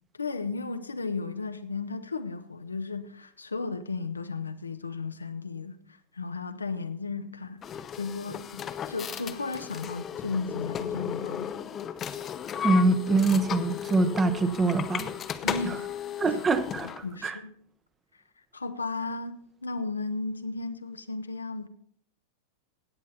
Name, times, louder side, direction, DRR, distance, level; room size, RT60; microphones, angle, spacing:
voice 1, 0.2-7.6 8.0-11.5 15.4-15.8 16.3-16.4 17.0-17.5 18.5-21.7, left 4 dB, 80° left, 0.8 m, -34 dB
sound 1, 7.6-17.0, left 9 dB, 25° left, 0.6 m, -35 dB
voice 2, 12.6-15.1 15.6-15.8 16.2-17.3, right 3 dB, 20° right, 0.9 m, -24 dB
16.5 x 8.5 x 4.2 m
figure-of-eight pair, 90°, 0 cm